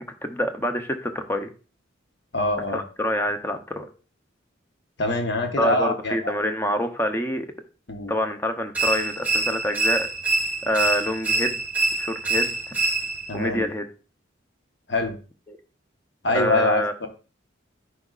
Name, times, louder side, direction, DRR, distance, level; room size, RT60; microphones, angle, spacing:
voice 1, 0.2-1.5 2.7-3.9 5.6-7.5 8.1-10.1 10.7-12.5 13.3-13.9 15.5-15.6 16.3-16.9, equal, 10° left, 6 dB, 0.7 m, -26 dB
voice 2, 2.3-2.8 5.0-6.3 7.9-8.1 13.3-13.7 14.9-15.2 16.2-17.1, left 2 dB, 60° left, 4 dB, 1.2 m, -24 dB
sound 1, 8.7-13.4, right 3 dB, 10° right, 1.1 m, -25 dB
10.0 x 4.8 x 2.4 m, 0.36 s
head